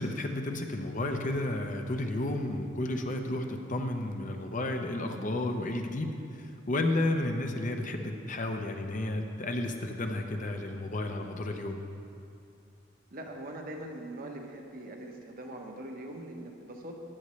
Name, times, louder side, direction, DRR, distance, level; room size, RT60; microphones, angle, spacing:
voice 1, 0.0-11.8, left 1 dB, 45° left, 4 dB, 0.8 m, -32 dB
voice 2, 13.1-17.0, right 1 dB, 50° right, 2 dB, 1.2 m, -42 dB
15.0 x 9.5 x 3.2 m, 2.6 s
head